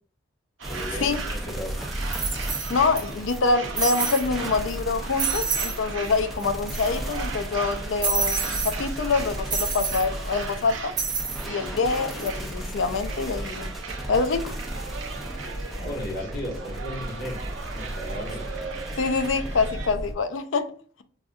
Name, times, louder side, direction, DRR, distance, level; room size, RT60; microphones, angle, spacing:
sound 1, 0.6-20.1, equal, ahead, 0.5 m, -35 dB
sound 2, 0.6-19.9, right 5 dB, 75° right, 0.7 m, -38 dB
voice 1, 0.7-1.8 15.7-17.4 17.7-18.5, equal, 50° left, 1.3 m, -35 dB
sound 3, 1.3-1.4 2.1-3.0 3.3-3.4 3.8-4.3 4.7-4.8 5.2-5.8 6.1-6.2 6.4-7.1 8.0-8.8 9.5-10.1 11.0-11.5 11.9-12.3, right 5 dB, 25° right, 1.1 m, -28 dB
voice 2, 2.7-10.9 11.4-13.7 14.1-14.5 19.0-20.7, left 4 dB, 80° left, 0.5 m, -25 dB
4.8 x 2.6 x 2.4 m
head